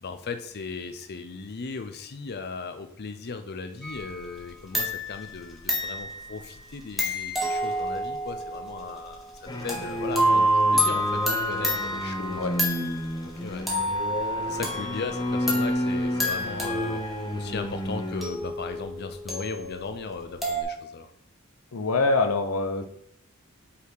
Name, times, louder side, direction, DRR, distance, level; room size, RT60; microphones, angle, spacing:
voice 1, 0.0-9.2 9.6-12.7 13.2-17.0 17.3-21.1, left 4 dB, 50° left, 8 dB, 0.6 m, -37 dB
sound 1, 3.8-4.5 4.7-13.3 13.7-20.6, equal, ahead, 1.4 m, -29 dB
sound 2, 9.5-18.2, equal, 20° left, 0.8 m, -31 dB
voice 2, 21.7-22.9, left 3 dB, 90° left, 8 dB, 0.8 m, -24 dB
5.6 x 4.2 x 4.6 m, 0.71 s
head